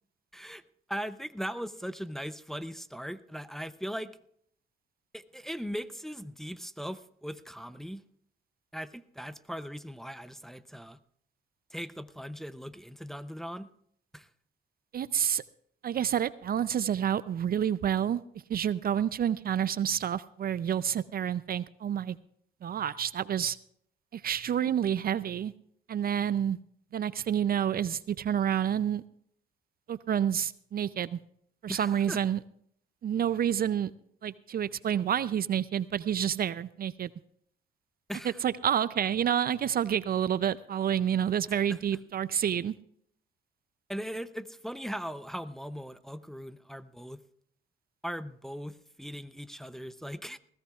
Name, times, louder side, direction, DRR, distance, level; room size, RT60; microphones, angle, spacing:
voice 1, 0.3-0.6 0.9-4.1 5.1-8.0 8.7-11.0 11.7-13.7 14.1-14.3 31.7-32.2 38.1-38.4 41.7-41.8 43.9-47.2 48.0-50.4, equal, ahead, 12 dB, 0.6 m, -39 dB
voice 2, 14.9-15.4 15.8-18.2 18.5-22.2 22.6-23.6 24.1-25.5 25.9-26.6 26.9-29.0 29.9-31.2 31.6-32.4 33.0-33.9 34.2-37.1 38.2-42.7, right 9 dB, 50° right, 16 dB, 0.5 m, -29 dB
20.5 x 16.0 x 2.4 m, 0.67 s
cardioid pair, 90°, 20 cm